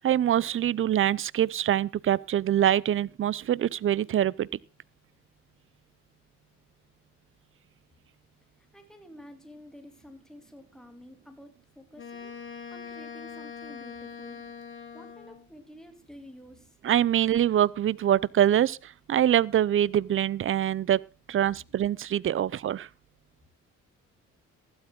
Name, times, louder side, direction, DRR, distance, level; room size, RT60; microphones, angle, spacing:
voice 1, 0.0-4.5 16.8-21.0 21.3-22.9, right 11 dB, 45° right, 0.6 m, -24 dB
voice 2, 8.6-12.3 12.7-14.4 14.9-16.9, left 1 dB, ahead, 2.7 m, -50 dB
Wind instrument woodwind instrument, 12.0-15.5, left 6 dB, 40° left, 3.1 m, -42 dB
15.0 x 12.5 x 3.7 m
cardioid pair, 90°, 30 cm